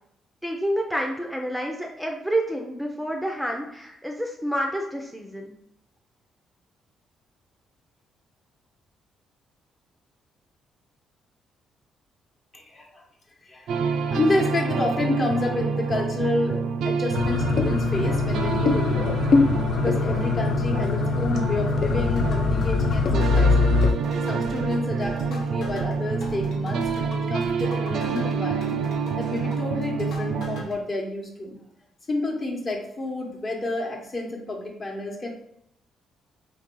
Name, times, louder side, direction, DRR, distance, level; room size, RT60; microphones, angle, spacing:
voice 1, 0.4-5.5, equal, ahead, 1 dB, 0.5 m, -28 dB
voice 2, 12.5-13.0 13.4-13.7 14.1-19.2 19.8-23.7 24.3-28.8 29.2-31.6 32.1-35.3, left 2 dB, 40° left, 1 dB, 1.0 m, -29 dB
sound 1, 13.7-30.6, right 5 dB, 75° right, 0.3 m, -27 dB
sound 2, 17.1-23.9, left 5 dB, 60° left, 0.4 m, -23 dB
sound 3, 22.1-30.7, left 1 dB, 85° left, 1.2 m, -42 dB
3.3 x 2.6 x 3.7 m, 0.77 s
cardioid pair, 90°, 0 cm